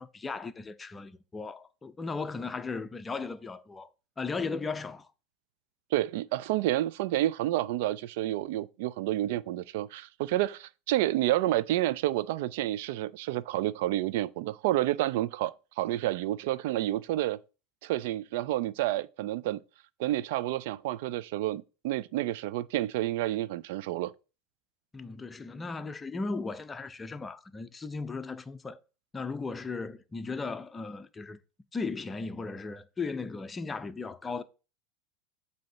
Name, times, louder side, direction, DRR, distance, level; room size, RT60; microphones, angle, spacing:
voice 1, 0.0-3.9 4.2-5.1 24.9-28.8 29.1-31.4 31.7-34.4, left 4 dB, 20° left, 0.6 m, -36 dB
voice 2, 5.9-17.4 17.8-19.6 20.0-24.1, right 14 dB, 65° right, 0.4 m, -29 dB
7.6 x 2.8 x 5.5 m
hypercardioid pair, 90°, 0 cm